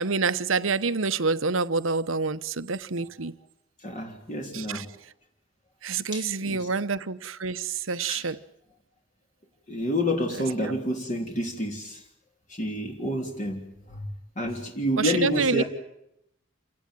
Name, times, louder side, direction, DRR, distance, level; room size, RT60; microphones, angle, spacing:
voice 1, 0.0-3.3 4.5-4.9 5.8-8.4 10.3-10.7 15.0-15.6, right 4 dB, 80° right, 1.1 m, -27 dB
voice 2, 3.8-4.9 6.1-6.7 8.0-8.3 9.7-12.0 12.5-14.1 14.4-15.6, equal, 35° left, 3.5 m, -29 dB
28.0 x 18.5 x 9.2 m
head